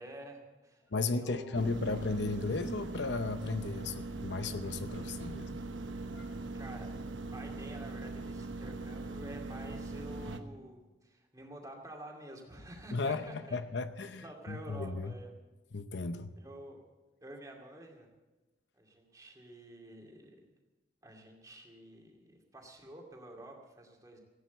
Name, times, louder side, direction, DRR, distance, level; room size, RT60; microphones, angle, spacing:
voice 1, 0.0-1.8 6.5-7.0 7.3-13.6 14.2-15.3 16.4-16.8 17.2-18.1 18.7-20.4 21.0-24.2, right 1 dB, 20° right, 0 dB, 2.4 m, -49 dB
voice 2, 0.9-5.6 6.1-6.4 12.9-15.1 15.7-16.3, left 3 dB, 70° left, 10 dB, 0.7 m, -35 dB
sound 1, 1.5-10.4, right 3 dB, 90° right, 1.1 m, -41 dB
16.5 x 9.4 x 7.9 m, 1.2 s
head